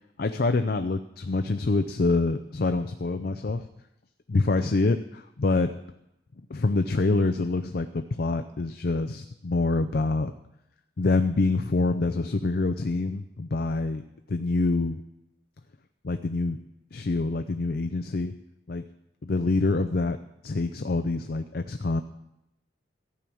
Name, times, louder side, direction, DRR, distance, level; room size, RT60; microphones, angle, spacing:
voice 1, 0.2-3.7 4.3-5.7 6.5-10.3 11.0-14.0 14.3-15.0 16.0-16.6 16.9-18.3 18.7-18.8 19.2-20.2 20.4-22.0, left 3 dB, 55° left, 9 dB, 0.5 m, -26 dB
14.5 x 6.1 x 8.6 m, 0.86 s
head